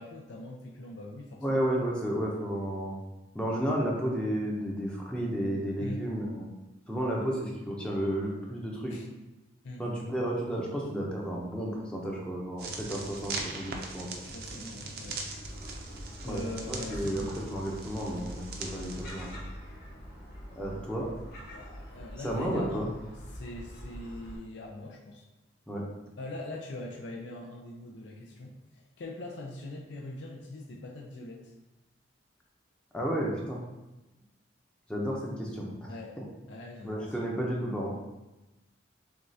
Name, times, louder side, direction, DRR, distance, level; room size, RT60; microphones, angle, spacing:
voice 1, 0.0-1.7 5.8-6.1 8.9-9.1 9.6-9.8 14.2-15.2 16.2-17.3 20.7-20.9 21.5-22.9 23.3-25.2 26.2-31.5 35.9-36.2 36.5-37.3, left 2 dB, 70° left, -1 dB, 0.5 m, -42 dB
voice 2, 1.4-3.0 3.3-6.5 6.9-9.0 9.8-14.2 16.2-19.4 20.6-21.1 22.2-22.9 25.7-25.8 32.9-33.6 34.9-36.2 36.8-37.9, equal, 5° left, -3 dB, 0.6 m, -32 dB
sound 1, 12.6-19.3, right 3 dB, 55° right, 0.5 m, -40 dB
Gull seagull, 15.4-24.4, equal, 50° left, 1.0 m, -45 dB
6.2 x 2.3 x 2.7 m, 1.0 s
head